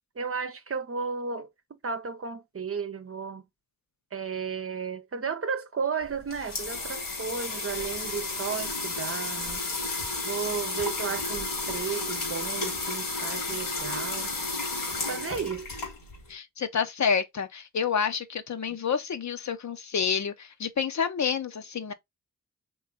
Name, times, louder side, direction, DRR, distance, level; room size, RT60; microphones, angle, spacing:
voice 1, 0.1-3.4 4.1-9.6 10.2-14.3 15.1-15.7, right 6 dB, 40° right, 0.8 m, -34 dB
sound 1, 6.0-16.3, left 3 dB, 90° left, 2.2 m, -32 dB
voice 2, 16.3-21.9, left 6 dB, 55° left, 0.8 m, -29 dB
3.9 x 3.2 x 3.9 m
cardioid pair, 45°, 33 cm